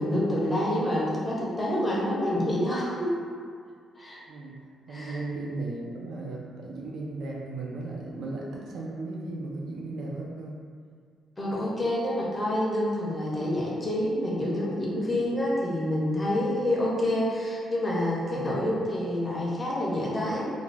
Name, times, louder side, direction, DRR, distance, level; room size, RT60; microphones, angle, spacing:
voice 1, 0.0-3.1 4.0-4.2 4.9-5.2 11.4-20.5, left 1 dB, 10° left, -6 dB, 0.5 m, -27 dB
voice 2, 4.3-4.6 4.9-10.6 18.4-18.6, right 2 dB, 70° right, -3 dB, 0.5 m, -36 dB
2.5 x 2.2 x 3.2 m, 2.1 s
cardioid pair, 160°, 0 cm